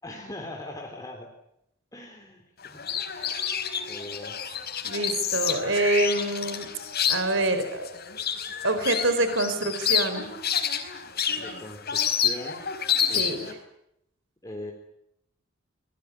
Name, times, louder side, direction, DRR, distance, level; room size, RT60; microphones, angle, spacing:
voice 1, 0.0-1.3 1.9-2.8 3.9-4.5 11.4-12.6 13.1-13.4 14.4-14.7, left 1 dB, 15° left, 1 dB, 3.8 m, -40 dB
sound 1, 2.6-13.5, left 8 dB, 50° left, 4.8 m, -29 dB
voice 2, 4.8-6.7 7.1-7.9 8.6-10.3 13.1-13.4, right 2 dB, 60° right, 10 dB, 4.7 m, -26 dB
26.0 x 22.0 x 8.7 m, 0.78 s
head